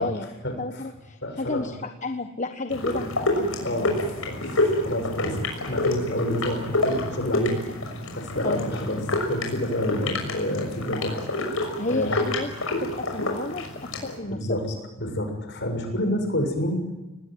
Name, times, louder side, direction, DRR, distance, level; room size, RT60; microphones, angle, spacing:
voice 1, 0.6-3.8 8.4-8.7 11.8-12.5 12.8-14.6, left 2 dB, 35° left, 7 dB, 1.2 m, -32 dB
voice 2, 1.2-1.7 2.9-3.0 3.6-7.6 8.1-9.0 9.3-11.2 11.9-12.2 14.2-14.7 15.0-16.8, left 1 dB, 55° left, 5 dB, 6.8 m, -28 dB
sound 1, 2.7-14.2, left 2 dB, 80° left, 6.4 m, -28 dB
27.0 x 19.5 x 9.4 m, 1.1 s
head